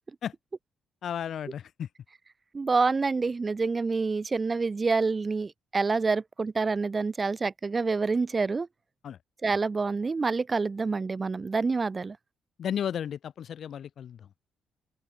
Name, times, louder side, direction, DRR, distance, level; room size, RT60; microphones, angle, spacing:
voice 1, 1.0-1.9 9.0-9.2 12.6-14.4, left 9 dB, 60° left, 0.3 m, -34 dB
voice 2, 2.5-8.7 9.4-12.2, right 4 dB, 30° right, 0.3 m, -27 dB
open air
cardioid pair, 90°, 0 cm